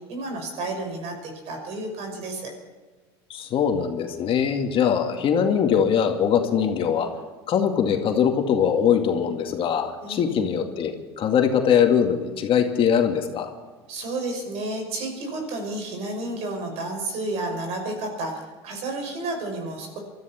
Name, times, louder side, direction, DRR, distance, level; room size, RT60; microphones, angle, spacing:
voice 1, 0.1-2.5 10.0-10.5 13.9-20.0, right 2 dB, 55° right, 3 dB, 6.0 m, -31 dB
voice 2, 3.3-7.1 7.5-13.5, left 8 dB, 45° left, 4 dB, 2.2 m, -22 dB
24.0 x 13.5 x 4.5 m, 1.3 s
hypercardioid pair, 85°, 13 cm